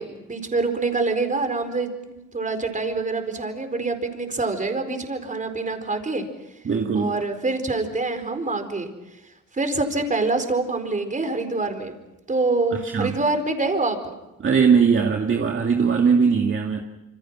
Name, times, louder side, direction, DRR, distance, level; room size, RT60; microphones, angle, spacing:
voice 1, 0.0-6.2 6.9-9.2 9.5-11.9 12.3-14.1, right 3 dB, 25° right, 7 dB, 4.5 m, -26 dB
voice 2, 6.6-7.1 12.7-13.2 14.4-16.8, right 6 dB, 40° right, 2 dB, 2.3 m, -20 dB
27.0 x 26.0 x 6.1 m, 0.96 s
cardioid pair, 90°, 30 cm